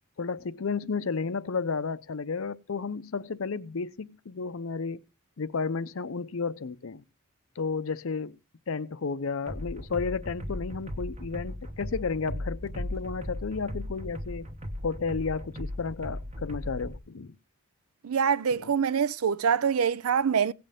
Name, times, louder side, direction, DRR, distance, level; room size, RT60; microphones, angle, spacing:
voice 1, 0.2-5.0 5.4-7.0 7.6-8.3 8.7-14.5 14.8-17.4 18.5-18.7, left 5 dB, 70° left, 0.6 m, -32 dB
sound 1, 9.5-17.0, left 1 dB, 30° right, 1.1 m, -37 dB
voice 2, 18.0-20.5, right 7 dB, 85° right, 0.5 m, -25 dB
17.0 x 7.7 x 3.5 m
head